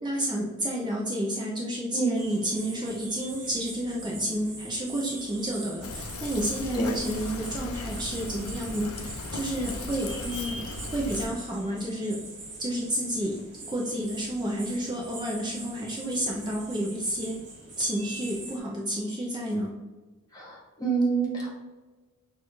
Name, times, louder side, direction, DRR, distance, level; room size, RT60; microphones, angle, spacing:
voice 1, 0.0-12.2 12.6-13.4 13.7-17.4 17.8-19.7, right 1 dB, 20° right, -2 dB, 0.5 m, -30 dB
sound 1, 2.2-18.6, right 2 dB, 55° right, 1.4 m, -43 dB
Fill (with liquid), 5.8-11.3, left 3 dB, 75° left, 0.4 m, -37 dB
voice 2, 20.3-21.6, right 4 dB, 15° left, -4 dB, 1.2 m, -27 dB
6.4 x 2.3 x 3.0 m, 1.3 s
head